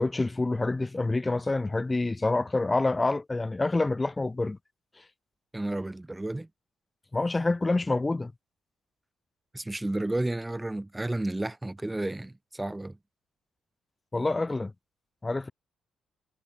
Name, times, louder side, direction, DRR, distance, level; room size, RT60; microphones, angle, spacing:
voice 1, 0.0-4.6 7.1-8.3 14.1-14.7 15.2-15.5, left 2 dB, 20° left, 5.3 m, -27 dB
voice 2, 5.5-6.5 9.5-13.0, right 1 dB, 10° right, 4.4 m, -32 dB
cardioid pair, 90°, 0 cm